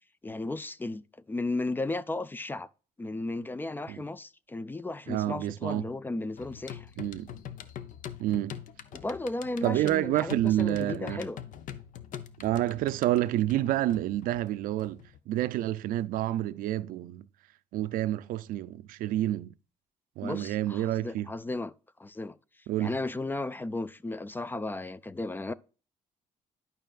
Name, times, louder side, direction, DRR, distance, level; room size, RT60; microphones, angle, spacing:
voice 1, 0.2-1.0 1.3-2.7 3.0-6.9 8.9-11.4 20.2-21.7 22.0-22.4 22.8-25.5, left 2 dB, 15° left, 0.3 m, -34 dB
voice 2, 5.1-5.8 7.0-7.3 8.2-8.6 9.6-11.2 12.4-15.0 15.3-17.3 17.7-19.5 20.2-21.3 22.7-22.9, right 14 dB, 85° right, 0.4 m, -29 dB
sound 1, 6.4-15.2, left 9 dB, 70° left, 0.6 m, -44 dB
11.5 x 5.4 x 2.4 m
cardioid pair, 110°, 14 cm